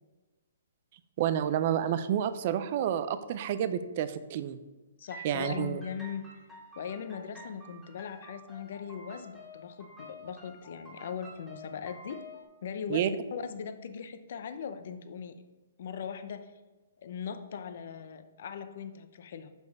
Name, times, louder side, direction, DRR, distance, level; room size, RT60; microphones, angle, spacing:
voice 1, 1.2-4.6 5.2-5.8 12.9-13.1, right 10 dB, 40° right, 12 dB, 0.4 m, -29 dB
voice 2, 5.0-6.2 6.8-12.2 12.6-15.3 15.8-16.6 17.0-19.5, left 7 dB, 55° left, 9 dB, 0.7 m, -39 dB
sound 1, 5.0-12.4, equal, ahead, 1.9 m, -49 dB
6.4 x 5.3 x 4.7 m, 1.2 s
hypercardioid pair, 155°, 0 cm